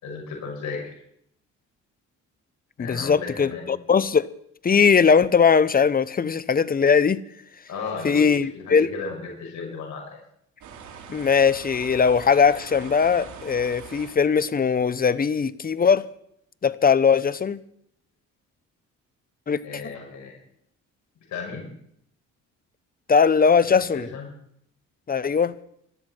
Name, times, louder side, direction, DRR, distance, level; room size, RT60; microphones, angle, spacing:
voice 1, 0.0-0.9 2.8-3.7 7.7-10.1 19.6-20.3 21.3-21.7 23.5-24.3, left 4 dB, 70° left, -1 dB, 6.5 m, -35 dB
voice 2, 2.8-4.3 4.6-7.2 8.0-8.9 11.1-16.0 16.6-17.6 19.5-19.6 23.1-24.1 25.1-25.5, left 6 dB, 30° left, 16 dB, 0.8 m, -20 dB
sound 1, 10.6-14.2, right 6 dB, 75° right, 3.1 m, -42 dB
19.0 x 13.0 x 4.5 m, 0.71 s
cardioid pair, 90°, 30 cm